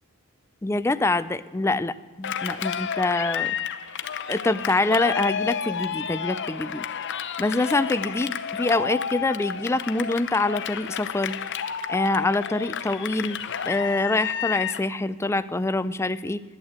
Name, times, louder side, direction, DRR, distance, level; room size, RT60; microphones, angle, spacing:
voice 1, 0.6-3.6 4.3-6.9 7.4-11.4 11.9-13.4 13.7-16.4, left 2 dB, 10° left, 15 dB, 0.3 m, -25 dB
Cheering, 2.2-14.9, left 7 dB, 55° left, 0.7 m, -31 dB
12.0 x 9.8 x 8.1 m, 1.4 s
head